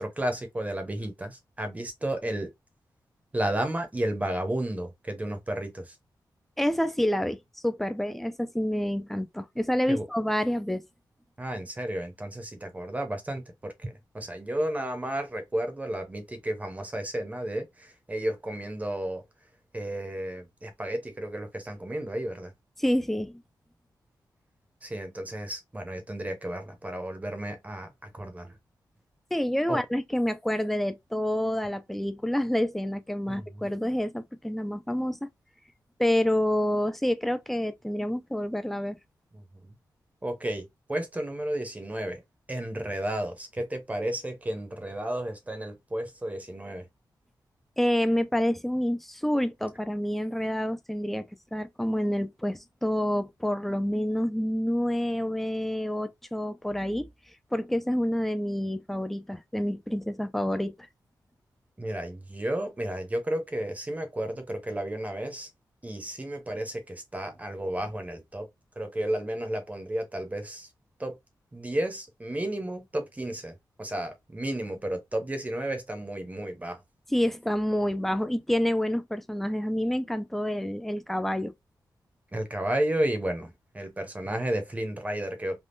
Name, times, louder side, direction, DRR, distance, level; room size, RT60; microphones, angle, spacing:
voice 1, 0.0-2.5 3.3-6.0 9.9-10.0 11.4-19.2 19.7-22.5 24.8-28.6 29.7-29.8 33.3-33.6 39.3-39.7 40.2-42.2 42.5-46.9 61.8-65.5 65.8-68.5 68.8-70.7 71.0-71.2 71.5-76.8 82.3-85.6, right 1 dB, 20° right, 0.8 m, -32 dB
voice 2, 6.6-10.9 22.8-23.4 29.3-35.3 36.0-39.0 47.8-57.1 57.5-60.7 77.1-81.5, left 1 dB, 5° left, 0.4 m, -28 dB
3.5 x 2.3 x 2.5 m
wide cardioid pair, 115°, 7 cm